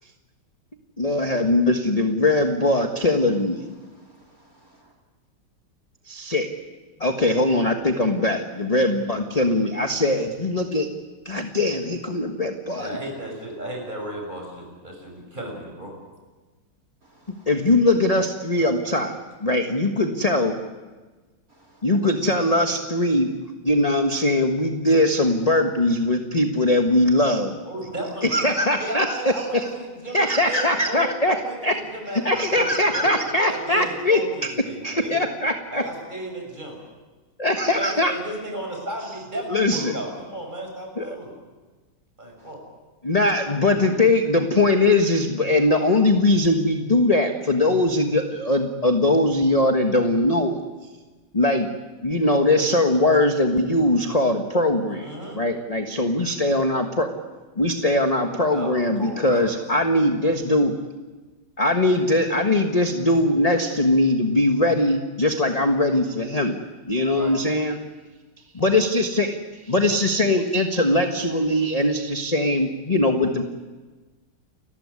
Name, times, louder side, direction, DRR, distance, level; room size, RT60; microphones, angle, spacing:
voice 1, 1.0-3.7 6.1-6.5 7.0-10.9 11.2-12.9 17.5-19.1 19.4-20.5 21.8-23.3 23.6-27.6 28.2-29.7 30.1-31.4 31.6-31.8 32.2-34.2 34.8-35.8 37.4-38.1 39.5-39.9 41.0-41.1 43.0-50.6 51.3-51.7 52.0-57.1 57.6-60.7 61.6-66.6 66.9-67.8 68.5-69.4 69.6-73.4, left 1 dB, 20° left, 1.3 m, -21 dB
voice 2, 3.8-4.9 17.0-17.5 21.5-21.8 42.4-42.5, right 1 dB, 40° right, 3.7 m, -57 dB
voice 3, 12.8-15.9 27.6-28.4 28.8-35.2 35.7-36.8 37.8-41.3 42.2-42.6 54.9-55.4 58.5-58.7 59.0-59.5 67.1-67.4, right 1 dB, 20° right, 6.9 m, -34 dB
30.0 x 15.0 x 9.8 m
omnidirectional pair, 2.3 m